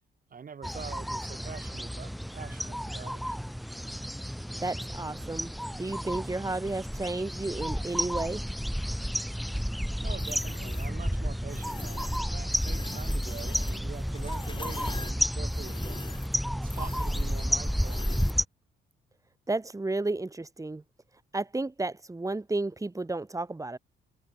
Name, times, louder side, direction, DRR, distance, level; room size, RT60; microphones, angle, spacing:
voice 1, 0.3-3.4 10.0-16.0 16.5-18.0, right 6 dB, 45° right, 6.4 m, -45 dB
sound 1, 0.6-18.4, equal, ahead, 0.6 m, -32 dB
voice 2, 4.6-5.5 5.8-8.4 19.5-20.8 21.3-23.8, right 2 dB, 15° right, 3.7 m, -32 dB
sound 2, 10.2-10.9 11.5-12.2 12.5-18.4, left 4 dB, 25° left, 2.2 m, -44 dB
cardioid pair, 90°, 20 cm